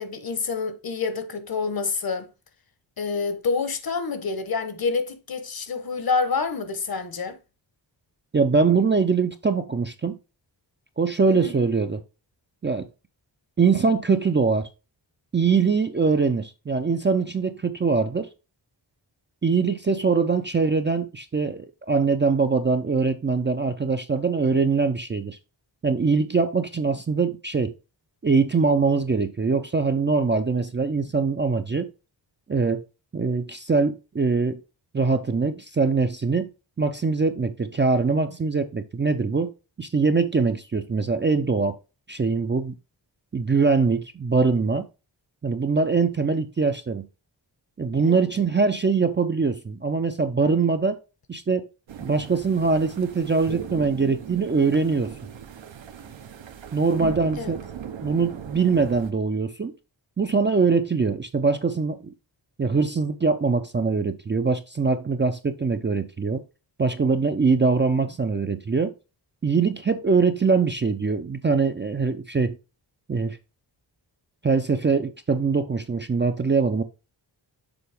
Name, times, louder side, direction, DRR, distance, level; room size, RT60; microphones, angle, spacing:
voice 1, 0.0-2.3 3.0-7.4 11.3-11.5 48.0-48.3 57.4-57.5, left 4 dB, 50° left, 0.9 m, -27 dB
voice 2, 8.3-10.2 11.0-12.0 12.6-12.9 13.6-14.7 15.3-18.3 19.4-25.4 25.8-27.7 28.2-31.9 32.5-32.9 33.1-34.6 34.9-36.5 36.8-39.5 39.8-41.8 42.1-42.8 43.3-44.9 45.4-47.1 47.8-51.0 51.3-51.7 52.0-55.1 56.7-57.6 58.0-59.7 60.2-62.1 62.6-66.4 66.8-68.9 69.4-72.5 73.1-73.4 74.4-76.8, right 4 dB, 25° right, 0.4 m, -23 dB
sound 1, 51.9-59.1, right 8 dB, 80° right, 0.8 m, -38 dB
6.9 x 4.1 x 3.4 m
wide cardioid pair, 155°, 45 cm